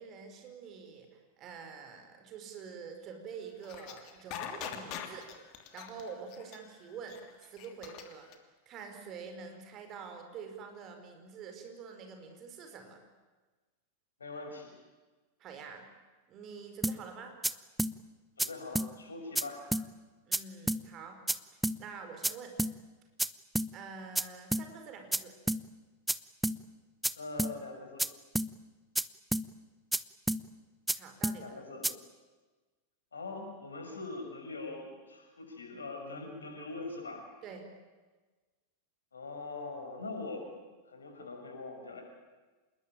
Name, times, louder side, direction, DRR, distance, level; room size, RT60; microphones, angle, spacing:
voice 1, 0.0-5.3 5.7-8.3 8.6-13.0 15.4-15.8 16.3-17.3 20.3-21.2 21.8-22.6 23.7-25.3 31.0-31.5 37.4-37.7, right 5 dB, 35° right, 5 dB, 5.1 m, -46 dB
sound 1, 3.6-8.3, left 10 dB, 40° left, 3.0 m, -42 dB
voice 2, 14.2-14.7 18.4-19.6 27.1-28.0 31.4-31.9 33.1-37.3 39.1-40.5 40.9-42.0, left 3 dB, 75° left, 3 dB, 6.5 m, -42 dB
sound 2, 16.8-17.0 17.4-17.5 17.8-17.9 18.4-18.5 18.8-18.9 19.4-19.5 19.7-19.9 20.3-20.4 20.7-20.8 21.3-21.4 21.6-21.8 22.2-22.3 22.6-22.7 23.2-23.3 23.6-23.7 24.2-24.3 24.5-24.7 25.1-25.2 25.5-25.6 26.1-26.2 26.4-26.6 27.0-27.1 27.4-27.5 28.0-28.1 28.4-28.5 29.0-29.1 29.3-29.5 29.9-30.0 30.3-30.4 30.9-31.0 31.2-31.4 31.8-31.9, right 1 dB, ahead, 0.7 m, -30 dB
27.5 x 20.5 x 9.0 m, 1.3 s
figure-of-eight pair, 90°, 0 cm